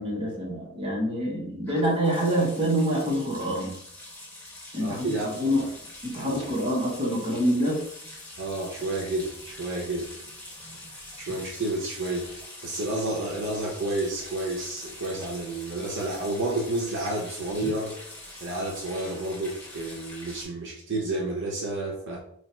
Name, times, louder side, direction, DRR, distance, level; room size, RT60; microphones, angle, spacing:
voice 1, 0.0-3.7 4.7-5.6 6.0-7.8, equal, 25° right, -4 dB, 1.0 m, -26 dB
sound 1, 1.7-20.4, left 1 dB, 10° left, 1.0 m, -44 dB
voice 2, 4.8-5.7 6.3-6.5 8.4-10.1 11.2-12.3 12.6-18.0 18.4-22.2, right 2 dB, 55° right, -1 dB, 0.7 m, -30 dB
3.1 x 2.3 x 4.3 m, 0.70 s
head